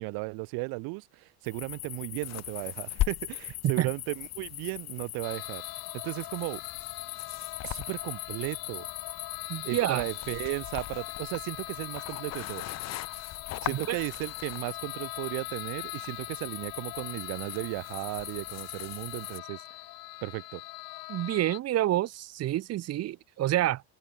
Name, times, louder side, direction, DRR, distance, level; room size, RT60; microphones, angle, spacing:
voice 1, 0.0-5.6 5.9-6.6 7.6-8.9 9.6-12.6 13.6-19.6 20.2-20.6, right 29 dB, 70° right, 1.2 m, -35 dB
sound 1, 1.4-19.4, left 15 dB, 45° left, 1.3 m, -39 dB
sound 2, 5.2-21.6, left 22 dB, 65° left, 6.5 m, -42 dB
voice 2, 9.5-10.0 13.7-13.9 21.1-23.8, right 14 dB, 40° right, 1.7 m, -28 dB
cardioid pair, 155°, 38 cm